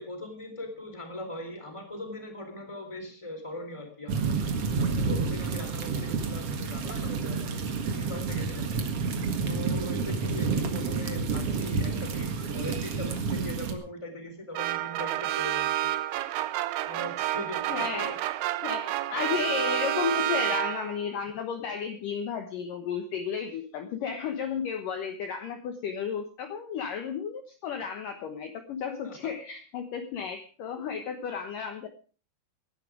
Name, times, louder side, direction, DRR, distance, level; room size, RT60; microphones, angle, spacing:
voice 1, 0.0-7.6 7.9-8.7 9.4-15.9 16.3-18.2 29.0-29.3, left 1 dB, 5° left, 6 dB, 3.2 m, -41 dB
sound 1, 4.1-13.7, right 4 dB, 50° right, 2.0 m, -29 dB
sound 2, 14.5-21.1, right 14 dB, 75° right, 2.8 m, -29 dB
voice 2, 17.7-18.2 18.6-31.9, left 6 dB, 65° left, 6 dB, 2.4 m, -33 dB
18.5 x 11.5 x 5.0 m, 0.38 s
omnidirectional pair, 4.9 m